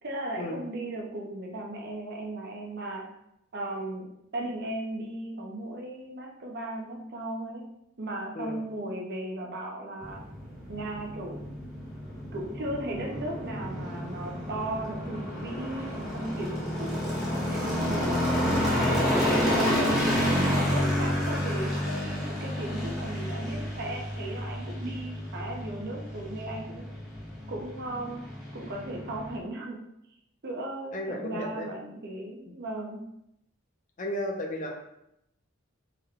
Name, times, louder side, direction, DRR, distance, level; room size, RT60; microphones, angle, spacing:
voice 1, 0.0-3.0 3.5-4.1 4.3-7.7 8.0-10.2 10.7-11.4 12.3-18.9 19.6-26.9 27.5-28.3 28.5-29.8 30.4-33.0, right 1 dB, 55° right, 0 dB, 0.6 m, -36 dB
sound 1, 10.0-29.4, equal, ahead, 0.9 m, -30 dB
voice 2, 30.9-31.7 34.0-35.0, left 1 dB, 40° left, 1 dB, 0.6 m, -34 dB
3.5 x 2.2 x 3.5 m, 0.81 s
head